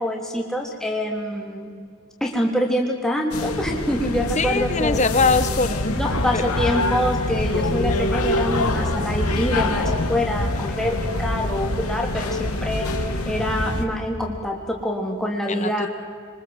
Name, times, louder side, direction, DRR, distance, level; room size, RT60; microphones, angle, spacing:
voice 1, 0.0-1.7 2.2-5.0 6.0-12.9 13.2-15.9, equal, ahead, 0 dB, 3.4 m, -25 dB
sound 1, 3.3-13.8, left 2 dB, 85° left, 2.8 m, -25 dB
voice 2, 4.4-6.0 6.3-6.4 15.5-15.9, left 4 dB, 30° left, 11 dB, 1.1 m, -22 dB
26.5 x 25.0 x 8.0 m, 2.1 s
head